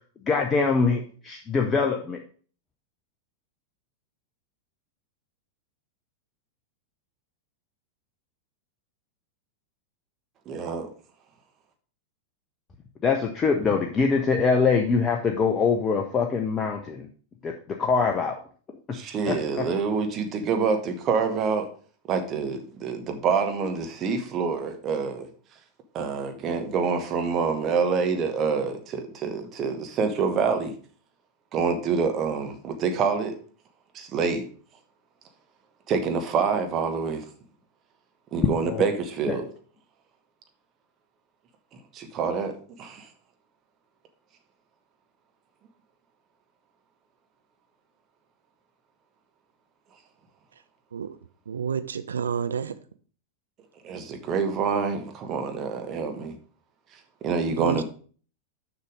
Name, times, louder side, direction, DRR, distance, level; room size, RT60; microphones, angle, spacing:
voice 1, 0.2-2.2 13.0-17.1 17.4-18.4 19.3-19.6 38.6-38.8, left 5 dB, 25° left, 0.7 m, -24 dB
voice 2, 10.5-10.9 18.9-21.7 22.1-25.3 25.9-30.7 31.5-33.3 33.9-34.4 35.9-37.2 38.3-39.5 41.9-42.5 42.8-43.1 53.8-56.3 57.2-57.8, right 5 dB, 30° right, 1.2 m, -26 dB
voice 3, 51.5-52.8 57.5-57.8, right 7 dB, 70° right, 0.5 m, -29 dB
6.7 x 5.7 x 5.0 m
figure-of-eight pair, 90°, 0 cm